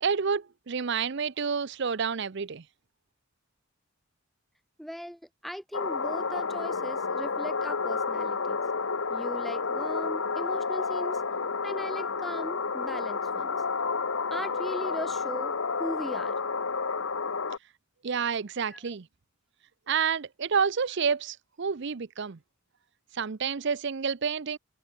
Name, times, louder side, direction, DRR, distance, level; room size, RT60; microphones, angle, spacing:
voice 1, 0.0-2.6 18.0-19.1 19.9-22.4 23.1-24.6, right 6 dB, 55° right, 0.6 m, -29 dB
voice 2, 4.8-8.6 9.1-11.2 11.6-13.6 14.3-15.5 15.8-16.4 18.7-18.8, equal, ahead, 0.4 m, -38 dB
sound 1, 5.7-17.6, left 4 dB, 65° left, 1.1 m, -30 dB
head